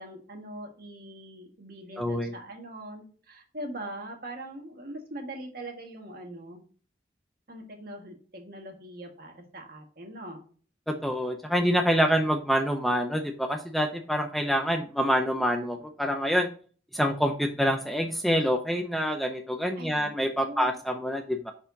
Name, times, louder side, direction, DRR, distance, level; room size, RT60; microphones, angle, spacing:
voice 1, 0.0-6.6 7.5-10.4 19.8-20.8, right 1 dB, 55° right, 2 dB, 1.7 m, -42 dB
voice 2, 2.0-2.3 10.9-16.5 16.9-21.5, equal, ahead, 4 dB, 0.5 m, -26 dB
9.7 x 4.4 x 2.7 m, 0.42 s
head